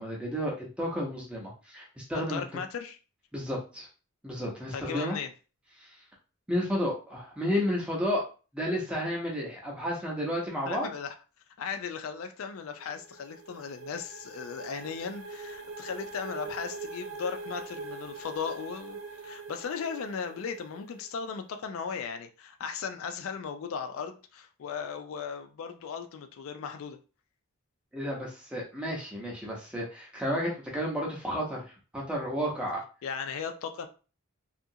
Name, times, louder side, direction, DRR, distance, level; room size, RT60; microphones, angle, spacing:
voice 1, 0.0-2.4 3.3-3.9 4.2-5.2 5.8-5.9 6.5-8.3 8.5-10.9 27.9-32.8, equal, 5° right, 0.7 m, -32 dB
voice 2, 2.3-3.0 4.7-5.3 10.6-11.1 11.6-27.0 33.0-33.9, left 6 dB, 70° left, 0.4 m, -37 dB
Run Now, 12.5-21.2, right 3 dB, 75° right, 0.5 m, -43 dB
2.8 x 2.4 x 2.7 m
head